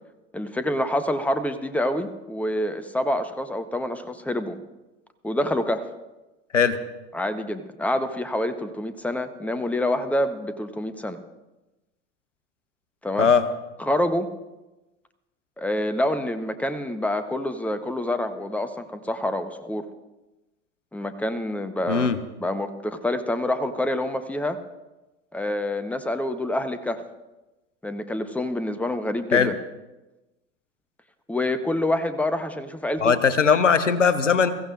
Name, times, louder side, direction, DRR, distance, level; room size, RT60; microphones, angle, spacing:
voice 1, 0.3-4.6 5.2-5.8 7.1-11.2 13.0-13.3 13.8-14.3 15.6-19.9 20.9-22.1 22.4-24.6 25.3-27.0 27.8-29.5 31.3-33.2, left 1 dB, 5° left, 10 dB, 1.0 m, -27 dB
voice 2, 33.0-34.5, left 6 dB, 90° left, 14 dB, 0.7 m, -19 dB
22.5 x 15.0 x 2.5 m, 1.1 s
figure-of-eight pair, 70°, 36 cm